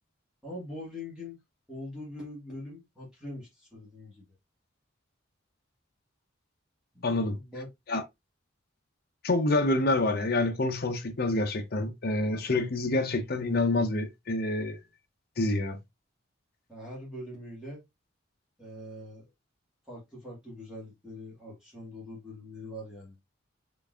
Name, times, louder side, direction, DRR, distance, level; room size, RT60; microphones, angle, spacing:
voice 1, 0.4-1.4 1.7-4.2 6.9-7.0 7.4-7.7 16.7-17.8 18.6-19.3 19.9-23.1, left 1 dB, 5° right, 1.7 m, -42 dB
voice 2, 7.0-7.4 7.9-8.0 9.2-14.8 15.4-15.8, left 2 dB, 50° left, 0.7 m, -27 dB
3.9 x 3.3 x 2.4 m
head